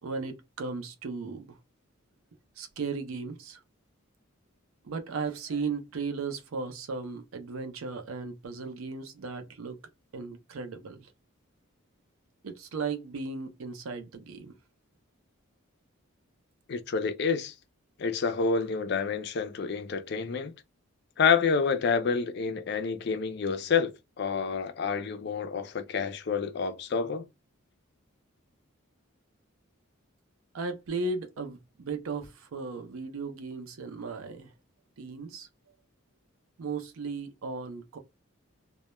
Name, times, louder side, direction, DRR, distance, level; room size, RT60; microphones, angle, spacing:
voice 1, 0.0-1.6 2.6-3.6 4.8-9.8 10.1-11.1 12.4-14.5 30.5-34.5 35.0-35.5 36.6-38.0, right 4 dB, 75° right, 0.5 m, -36 dB
voice 2, 16.7-17.5 18.0-20.5 21.2-27.2, left 5 dB, 50° left, 0.3 m, -28 dB
2.1 x 2.1 x 2.9 m
head